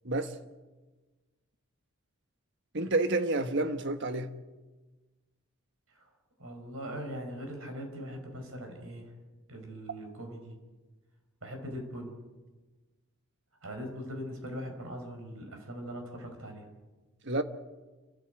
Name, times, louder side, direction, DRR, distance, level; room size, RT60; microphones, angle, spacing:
voice 1, 2.7-4.3 17.2-17.4, right 2 dB, 55° right, 1.3 m, -29 dB
voice 2, 6.4-9.1 9.5-10.6 11.4-12.2 13.6-16.7, equal, 70° right, 4.9 m, -41 dB
29.5 x 13.0 x 8.2 m
head